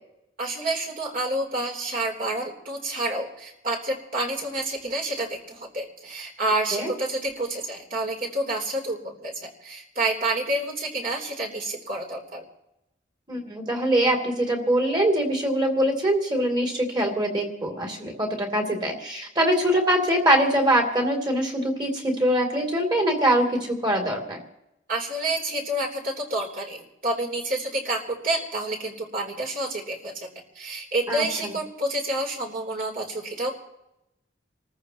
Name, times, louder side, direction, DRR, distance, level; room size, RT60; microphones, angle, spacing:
voice 1, 0.4-12.4 24.9-30.3 30.6-33.5, right 2 dB, 45° right, -1 dB, 3.5 m, -29 dB
voice 2, 13.3-24.4 31.1-31.5, right 1 dB, 25° right, 2 dB, 3.1 m, -23 dB
28.0 x 14.5 x 3.0 m, 0.86 s
head